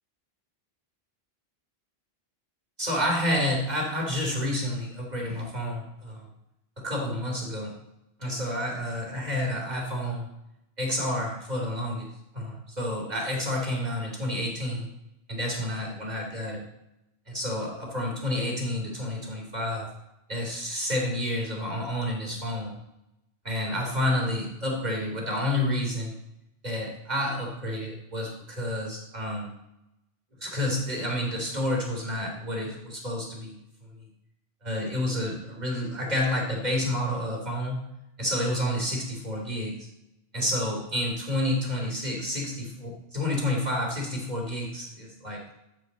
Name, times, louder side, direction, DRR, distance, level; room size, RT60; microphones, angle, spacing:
voice 1, 2.8-6.3 6.8-7.7 8.2-10.3 10.8-12.1 12.3-14.9 15.3-16.6 17.3-19.9 20.3-22.8 23.4-26.1 26.6-29.5 30.4-33.6 34.6-37.8 38.2-39.7 40.3-45.4, left 1 dB, 40° right, -1 dB, 3.4 m, -29 dB
14.0 x 7.9 x 4.2 m, 0.88 s
omnidirectional pair, 1.1 m